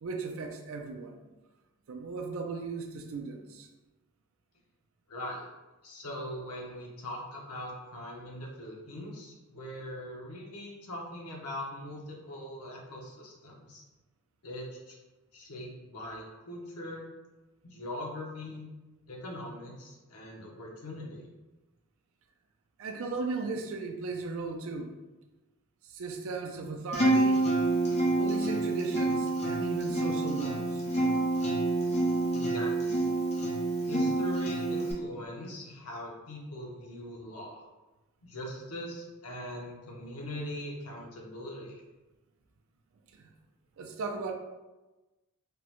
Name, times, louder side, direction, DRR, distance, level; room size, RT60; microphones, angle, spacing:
voice 1, 0.0-1.2 1.9-3.7 22.8-25.0 25.9-27.5 28.2-30.8 43.2-43.3 43.8-44.3, right 4 dB, 65° right, 4 dB, 0.4 m, -36 dB
voice 2, 5.1-5.5 5.8-13.8 14.4-15.0 15.3-17.1 17.6-18.7 19.1-21.3 32.3-33.0 33.9-37.7 38.2-41.8, left 1 dB, 85° left, -1 dB, 0.7 m, -41 dB
Acoustic guitar, 26.9-34.9, right 2 dB, 30° left, 0.5 m, -28 dB
3.4 x 2.0 x 2.9 m, 1.1 s
head